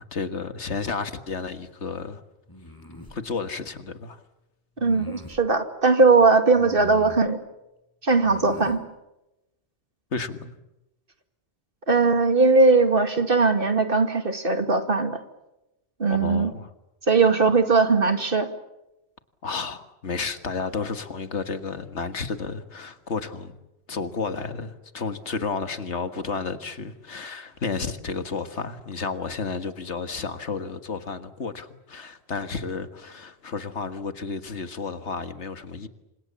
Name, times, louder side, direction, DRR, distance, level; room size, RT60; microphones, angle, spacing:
voice 1, 0.0-2.2 3.1-4.2 10.1-10.5 16.1-16.7 19.4-23.6 23.9-35.9, left 4 dB, 80° left, 1.9 m, -32 dB
sound 1, 2.5-3.2 4.8-5.4 6.6-7.3 8.2-8.8, equal, 20° left, 5.4 m, -42 dB
voice 2, 4.8-7.4 8.0-8.8 11.9-15.2 16.0-16.5 17.1-18.5, right 4 dB, 50° right, 2.3 m, -19 dB
28.0 x 26.5 x 7.2 m
omnidirectional pair, 1.2 m